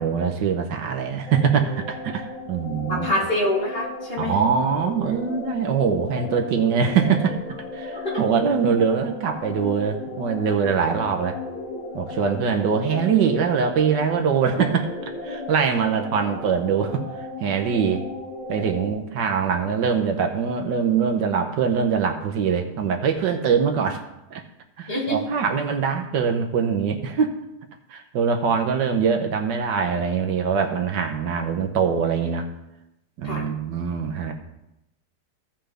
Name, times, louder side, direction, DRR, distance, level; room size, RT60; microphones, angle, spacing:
voice 1, 0.0-3.1 4.2-11.4 11.9-14.9 15.2-18.0 18.5-24.0 24.3-24.4 24.8-27.3 27.9-32.5 33.2-34.3, right 6 dB, 75° right, 4 dB, 1.5 m, -23 dB
sound 1, 1.3-18.9, left 2 dB, 70° left, 2.0 m, -35 dB
voice 2, 2.9-4.3 8.0-8.2 24.9-25.2 33.2-33.5, left 1 dB, 30° left, -4 dB, 2.4 m, -25 dB
16.0 x 5.7 x 3.4 m, 0.89 s
omnidirectional pair, 2.0 m